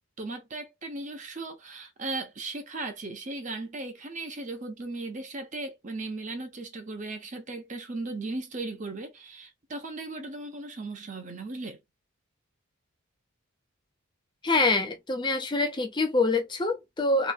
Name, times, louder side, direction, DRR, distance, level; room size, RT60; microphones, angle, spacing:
voice 1, 0.2-11.8, right 2 dB, 35° right, 0.8 m, -37 dB
voice 2, 14.4-17.3, left 3 dB, 20° left, 0.5 m, -25 dB
3.3 x 3.1 x 2.5 m
head